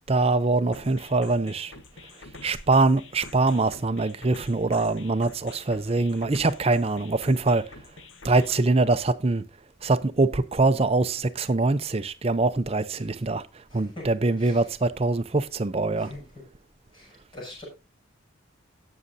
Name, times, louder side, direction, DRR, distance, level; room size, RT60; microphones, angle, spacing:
voice 1, 0.1-1.7 2.4-7.8 8.2-9.4 9.8-16.1, right 3 dB, 30° right, 0.5 m, -23 dB
sound 1, 0.7-8.7, left 3 dB, 70° left, 1.2 m, -47 dB
voice 2, 13.7-14.1 14.4-14.7 15.9-16.4 16.9-17.7, left 1 dB, 25° left, 6.1 m, -44 dB
17.0 x 6.6 x 2.6 m
head